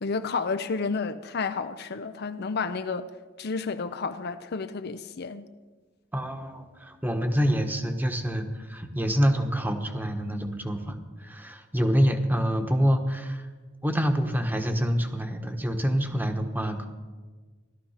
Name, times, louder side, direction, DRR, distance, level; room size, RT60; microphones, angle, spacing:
voice 1, 0.0-3.1 3.4-5.5, left 4 dB, 55° left, 0.6 m, -31 dB
voice 2, 6.1-13.5 13.8-16.9, equal, 10° right, 1.2 m, -26 dB
16.5 x 12.5 x 5.8 m
head